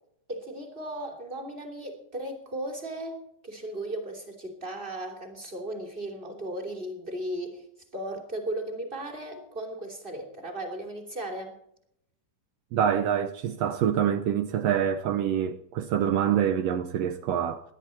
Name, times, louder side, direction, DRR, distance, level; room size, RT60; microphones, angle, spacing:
voice 1, 0.3-7.6 7.9-11.6, right 1 dB, 15° right, 2.6 m, -36 dB
voice 2, 12.7-17.6, right 9 dB, 85° right, 1.4 m, -26 dB
18.0 x 11.5 x 4.4 m
omnidirectional pair, 3.8 m